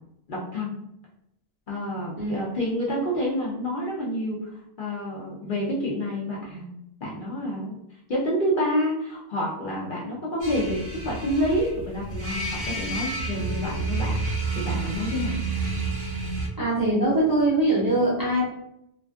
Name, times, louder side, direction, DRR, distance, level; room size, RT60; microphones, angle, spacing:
voice 1, 0.3-0.8 1.7-6.7 7.0-15.4, equal, 55° left, -4 dB, 0.6 m, -28 dB
sound 1, 10.4-16.5, right 3 dB, 65° right, 0.9 m, -30 dB
voice 2, 16.6-18.4, right 1 dB, 30° right, -7 dB, 0.4 m, -22 dB
2.4 x 2.4 x 2.3 m, 0.79 s
omnidirectional pair, 1.2 m